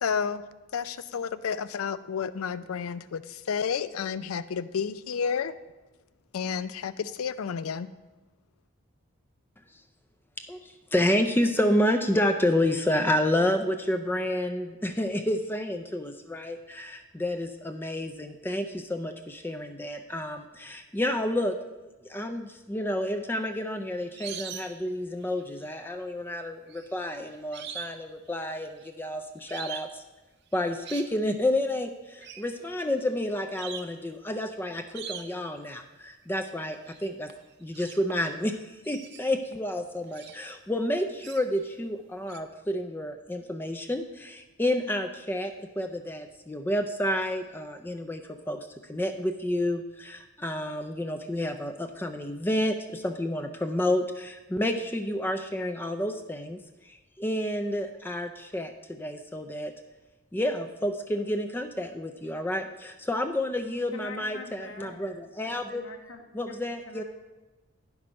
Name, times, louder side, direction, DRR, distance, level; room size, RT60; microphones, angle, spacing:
voice 1, 0.0-0.4 0.7-5.5 6.3-7.9, left 6 dB, 85° left, 14 dB, 0.4 m, -31 dB
voice 2, 10.4-21.6 22.0-30.0 30.5-37.3 37.6-38.6 38.9-56.6 56.9-59.7 60.3-65.8 66.3-67.0, left 1 dB, 10° left, 7 dB, 0.3 m, -30 dB
sound 1, 23.4-24.9 25.2-25.7 26.7-28.0 28.3-28.9 29.5-29.9 30.5-31.1 32.2-32.5 33.1-33.2 33.6-34.0 34.9-35.5 36.9-37.0 37.3-38.4 38.8-40.5 41.2-41.7 42.3-42.4, right 8 dB, 50° right, 0.6 m, -42 dB
voice 3, 63.9-65.1 65.7-66.6 66.9-67.0, left 3 dB, 65° left, 3 dB, 1.1 m, -44 dB
9.8 x 6.0 x 5.1 m, 1.1 s
head